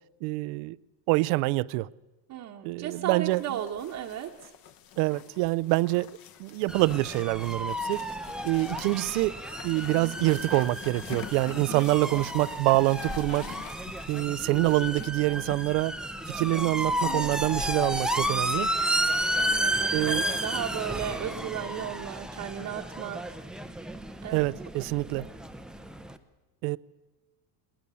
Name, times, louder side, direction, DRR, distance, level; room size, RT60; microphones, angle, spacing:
voice 1, 0.2-0.8 1.1-1.9 2.6-3.6 5.0-6.1 6.4-8.1 8.4-13.5 14.1-16.0 16.3-18.7 19.9-20.2 24.3-25.3 26.6-26.8, right 21 dB, 65° right, 0.6 m, -26 dB
voice 2, 2.3-4.5 17.0-17.3 19.4-23.2 24.2-24.4, right 10 dB, 40° right, 1.1 m, -35 dB
sound 1, 3.3-19.3, left 10 dB, 45° left, 1.3 m, -47 dB
sound 2, 6.7-26.2, right 1 dB, ahead, 0.6 m, -32 dB
20.0 x 19.5 x 6.9 m
supercardioid pair, 135°, 48 cm